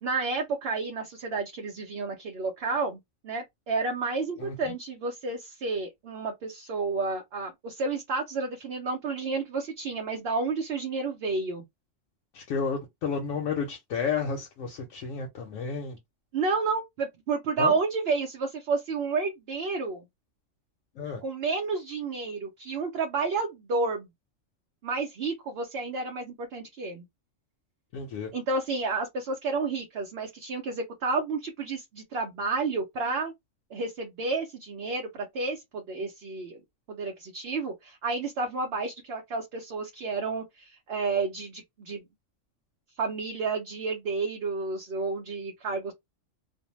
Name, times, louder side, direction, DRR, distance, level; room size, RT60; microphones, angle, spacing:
voice 1, 0.0-11.6 16.3-20.0 21.2-24.1 24.8-27.0 28.3-33.3 33.7-36.6 36.9-42.0 43.0-45.9, right 4 dB, 65° right, 0.7 m, -31 dB
voice 2, 12.3-16.0 17.6-17.8 21.0-21.2 27.9-28.3, left 5 dB, 85° left, 1.0 m, -31 dB
2.5 x 2.1 x 3.0 m
omnidirectional pair, 1.3 m